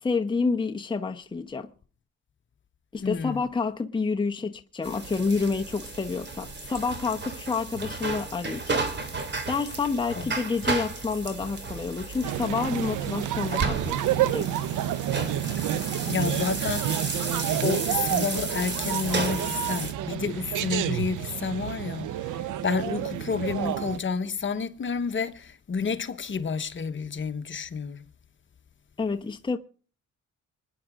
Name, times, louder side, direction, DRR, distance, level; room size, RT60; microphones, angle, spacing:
voice 1, 0.0-1.7 2.9-8.8 9.5-14.5 29.0-29.6, left 4 dB, 15° left, 0.9 m, -29 dB
voice 2, 3.0-3.4 10.2-10.3 16.1-17.2 17.6-22.1 22.6-28.0, left 5 dB, 40° left, 1.2 m, -30 dB
sound 1, 4.8-19.9, right 3 dB, 35° right, 2.9 m, -33 dB
sound 2, 12.2-24.0, right 11 dB, 80° right, 0.8 m, -29 dB
26.5 x 10.0 x 3.6 m
cardioid pair, 90°, 30 cm